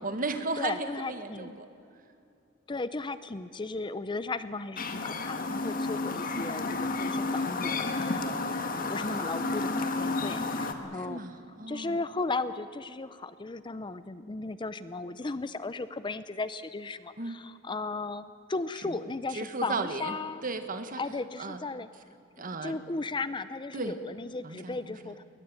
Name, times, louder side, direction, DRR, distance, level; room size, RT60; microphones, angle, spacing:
voice 1, 0.0-1.7 9.0-9.5 11.1-12.0 17.2-17.3 18.8-19.0 19.4-20.1 20.4-21.0 21.4-21.6 22.4-22.8 23.7-23.9 24.4-24.9, right 3 dB, 45° right, 8 dB, 1.7 m, -35 dB
voice 2, 0.6-1.6 2.7-8.6 8.9-11.2 11.5-20.5 21.0-21.9 22.6-25.2, left 3 dB, 25° left, 14 dB, 0.6 m, -36 dB
Chirp tweet, 4.8-10.7, left 3 dB, 45° left, 1.7 m, -31 dB
21.0 x 20.0 x 8.9 m, 2.6 s
head